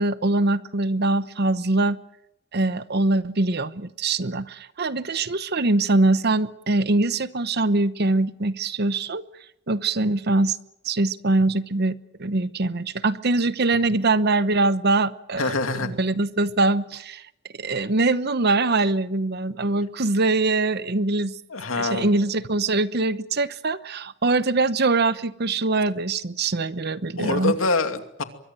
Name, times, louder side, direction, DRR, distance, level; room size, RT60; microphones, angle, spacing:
voice 1, 0.0-2.0 2.5-9.2 9.7-10.6 10.8-17.3 17.6-21.3 21.8-27.5, right 2 dB, 50° right, 15 dB, 1.0 m, -23 dB
voice 2, 15.4-15.9 21.5-22.1 27.2-28.2, left 3 dB, 85° left, 7 dB, 2.6 m, -25 dB
24.0 x 23.0 x 7.7 m, 0.80 s
head